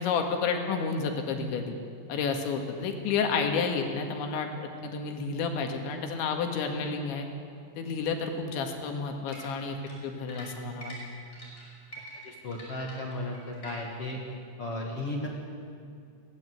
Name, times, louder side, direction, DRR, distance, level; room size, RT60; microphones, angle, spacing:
voice 1, 0.0-1.8 2.1-4.5 4.8-7.3 7.8-9.8 10.0-11.0, left 5 dB, 85° left, 4 dB, 4.2 m, -30 dB
sound 1, 9.3-14.1, right 1 dB, 15° left, 5.3 m, -46 dB
voice 2, 12.2-14.2 14.6-15.3, left 1 dB, 45° left, -1 dB, 2.0 m, -35 dB
21.0 x 18.0 x 8.1 m, 2.3 s
omnidirectional pair, 5.2 m